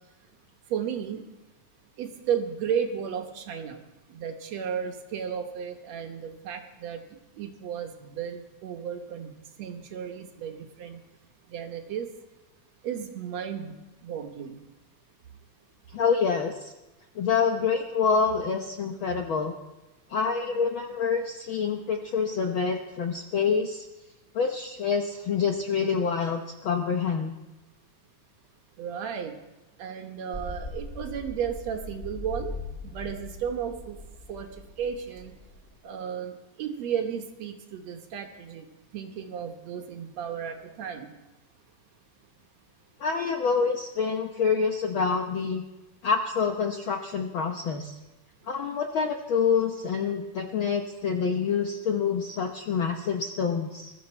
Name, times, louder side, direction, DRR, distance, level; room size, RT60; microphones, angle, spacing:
voice 1, 0.7-1.2 2.0-3.8 4.1-7.0 7.4-9.3 9.6-11.0 11.5-12.1 12.8-13.7 14.0-14.6 28.8-29.3 29.8-32.6 32.9-34.0 34.3-34.5 34.8-35.3 35.8-36.3 36.6-38.7 38.9-41.1, right 8 dB, 65° right, 5 dB, 2.3 m, -33 dB
voice 2, 15.9-16.7 17.1-19.5 20.1-23.9 24.3-27.3 43.0-45.6 46.0-47.9 48.5-53.9, left 5 dB, 65° left, 3 dB, 1.2 m, -27 dB
sound 1, 30.3-35.7, left 1 dB, 10° left, 1.1 m, -40 dB
22.0 x 13.0 x 4.4 m, 1.1 s
omnidirectional pair, 3.4 m